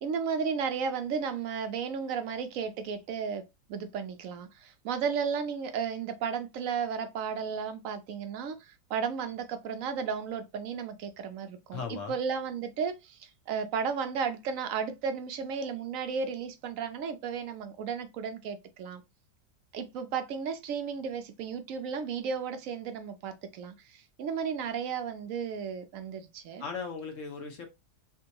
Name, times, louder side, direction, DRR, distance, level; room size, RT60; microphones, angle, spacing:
voice 1, 0.0-3.4 3.7-19.0 19.7-26.6, right 6 dB, 65° right, 0.8 m, -34 dB
voice 2, 11.7-12.2 26.6-27.7, left 5 dB, 55° left, 1.1 m, -37 dB
3.5 x 3.1 x 2.8 m
omnidirectional pair, 1.8 m